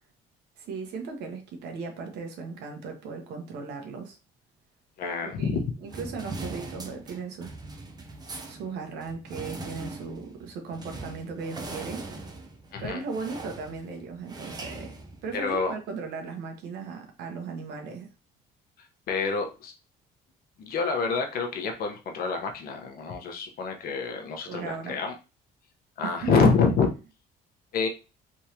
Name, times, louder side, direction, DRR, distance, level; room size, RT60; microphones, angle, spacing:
voice 1, 0.6-4.2 5.2-7.5 8.5-12.0 12.8-18.1 24.5-25.0 26.0-26.5, right 5 dB, 80° right, 4 dB, 1.2 m, -37 dB
voice 2, 5.0-5.6 12.7-13.0 15.3-15.8 19.1-19.7 20.6-25.1 26.0-26.9 27.7-27.9, left 5 dB, 60° left, 3 dB, 1.1 m, -27 dB
sound 1, 5.9-15.7, right 2 dB, 25° right, 0.8 m, -41 dB
3.6 x 3.2 x 2.9 m, 0.31 s
cardioid pair, 110°, 17 cm